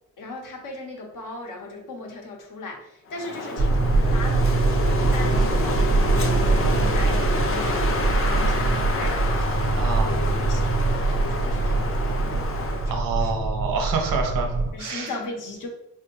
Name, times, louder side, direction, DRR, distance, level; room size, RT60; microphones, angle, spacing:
voice 1, 0.2-10.8 11.1-12.2 12.8-13.3 14.7-15.7, left 2 dB, 75° left, 1 dB, 0.8 m, -37 dB
Wind, 3.1-13.0, left 2 dB, 40° left, 0.5 m, -29 dB
sound 1, 3.6-14.7, right 3 dB, 40° right, 0.4 m, -23 dB
voice 2, 9.7-10.1 12.9-15.1, right 4 dB, 85° right, 3 dB, 0.7 m, -27 dB
3.4 x 2.1 x 2.9 m, 0.84 s
cardioid pair, 75°, 33 cm